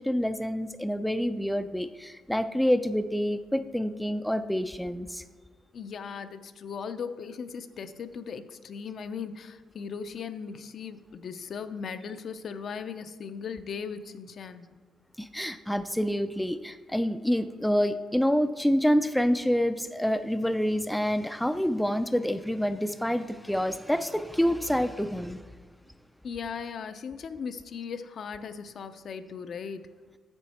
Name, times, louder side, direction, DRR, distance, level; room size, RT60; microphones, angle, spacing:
voice 1, 0.0-5.2 15.2-25.4, equal, 5° left, 10 dB, 0.3 m, -27 dB
voice 2, 5.7-14.7 26.2-29.9, left 6 dB, 55° left, 10 dB, 0.5 m, -38 dB
8.9 x 6.5 x 4.2 m, 1.4 s
cardioid pair, 90°, 0 cm